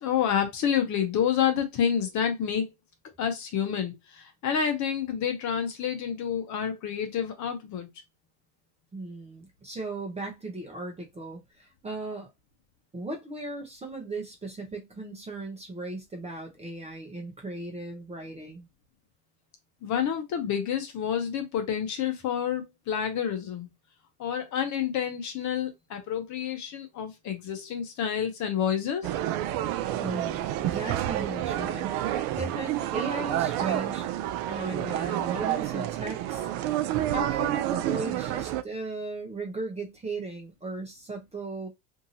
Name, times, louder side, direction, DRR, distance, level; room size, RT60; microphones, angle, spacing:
voice 1, 0.0-2.7 3.2-7.9 19.8-23.7 24.2-29.1, left 8 dB, 40° left, 0.8 m, -29 dB
voice 2, 8.9-12.3 12.9-18.7 30.0-34.1 34.5-36.5 37.1-41.7, right 2 dB, 15° right, 0.8 m, -37 dB
sound 1, 29.0-38.6, right 13 dB, 50° right, 0.4 m, -29 dB
2.7 x 2.6 x 2.7 m
supercardioid pair, 105°, 46 cm